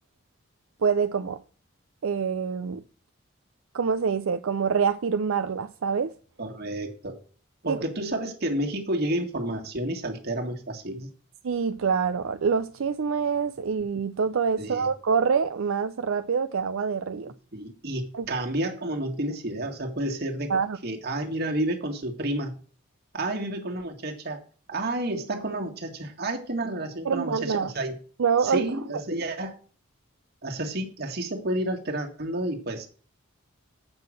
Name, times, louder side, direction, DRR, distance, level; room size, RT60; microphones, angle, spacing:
voice 1, 0.8-1.4 2.0-2.8 3.7-6.1 7.7-7.8 11.4-17.3 18.1-18.3 20.5-20.8 27.0-27.7 28.2-28.6, right 6 dB, 85° right, 0.5 m, -25 dB
voice 2, 6.4-7.2 7.6-11.1 14.6-14.9 17.5-20.5 20.8-22.5 23.1-24.4 24.7-28.0 28.4-29.6 30.4-32.9, right 1 dB, 50° right, 1.9 m, -30 dB
7.9 x 5.7 x 7.5 m
head